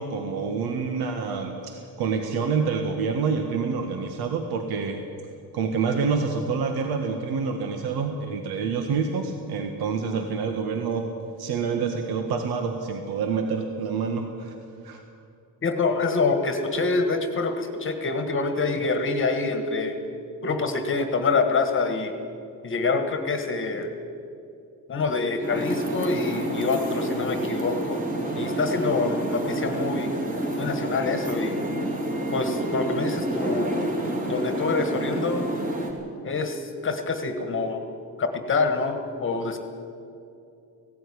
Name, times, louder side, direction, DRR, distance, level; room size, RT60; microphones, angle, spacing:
voice 1, 0.0-5.0 5.5-11.1 11.4-14.5 14.8-15.0, right 5 dB, 80° right, 5 dB, 1.7 m, -27 dB
voice 2, 15.6-20.0 20.4-22.1 22.6-23.9 24.9-28.0 28.3-30.1 30.6-31.6 32.3-33.9 34.3-35.5 36.2-37.8 38.2-39.6, left 3 dB, 35° left, 7 dB, 1.5 m, -26 dB
sound 1, 25.4-35.9, right 1 dB, 20° right, 3.3 m, -29 dB
18.0 x 16.5 x 9.8 m, 2.6 s
cardioid pair, 175°, 37 cm